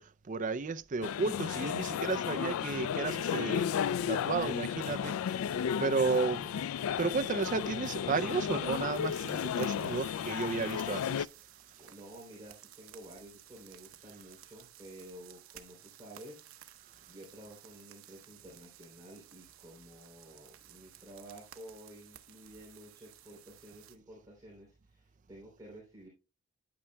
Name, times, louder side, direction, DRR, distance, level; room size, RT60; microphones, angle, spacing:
voice 1, 0.0-3.7 4.1-5.5 5.8-6.5 7.0-11.3, right 4 dB, 40° right, 0.5 m, -33 dB
sound 1, 1.0-11.3, left 8 dB, 85° left, 0.3 m, -34 dB
voice 2, 5.9-6.6 11.8-26.1, right 1 dB, 20° right, 3.1 m, -52 dB
sound 2, 8.9-24.0, right 12 dB, 80° right, 0.8 m, -56 dB
9.5 x 8.8 x 2.2 m
head